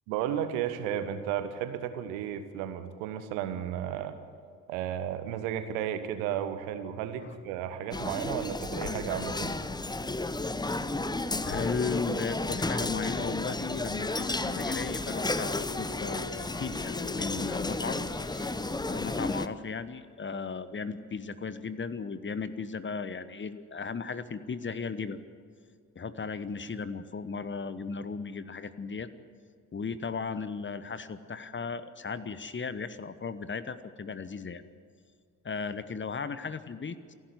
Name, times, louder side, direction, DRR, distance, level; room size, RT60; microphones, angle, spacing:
voice 1, 0.1-4.2 4.7-9.5, right 10 dB, 70° right, 10 dB, 1.4 m, -33 dB
sound 1, 7.9-19.5, left 2 dB, 10° left, 0.9 m, -32 dB
Crackle, 8.8-13.0 13.3-18.5, left 6 dB, 75° left, 1.7 m, -47 dB
voice 2, 10.4-10.8 11.4-18.0 18.8-25.2 25.9-29.1 29.7-34.6 35.4-37.1, left 5 dB, 30° left, 14 dB, 1.2 m, -36 dB
28.0 x 11.5 x 9.6 m, 2.2 s
figure-of-eight pair, 45°, 41 cm